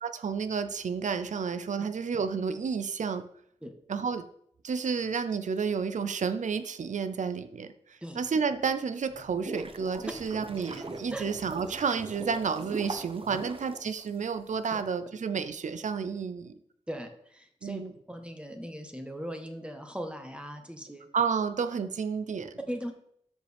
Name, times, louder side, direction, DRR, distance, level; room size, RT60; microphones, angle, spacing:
voice 1, 0.0-3.2 3.9-4.2 4.6-16.5 17.6-17.9 21.1-22.6, right 6 dB, 75° right, 10 dB, 0.6 m, -31 dB
sound 1, 9.1-14.5, right 2 dB, 45° right, 0.9 m, -41 dB
voice 2, 16.9-21.1 22.7-22.9, equal, 10° right, 4 dB, 1.3 m, -39 dB
13.0 x 5.2 x 3.5 m, 0.69 s
wide cardioid pair, 70°, 13 cm